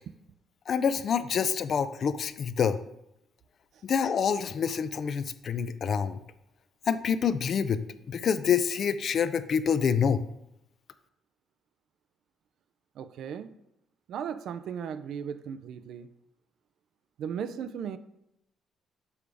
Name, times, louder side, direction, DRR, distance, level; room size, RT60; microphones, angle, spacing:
voice 1, 0.7-2.8 3.8-6.2 6.9-10.2, left 7 dB, 55° left, 13 dB, 0.4 m, -27 dB
voice 2, 13.0-13.5 14.1-16.1 17.2-18.0, right 7 dB, 70° right, 12 dB, 0.4 m, -36 dB
7.0 x 4.8 x 3.4 m, 0.81 s
cardioid pair, 95°, 0 cm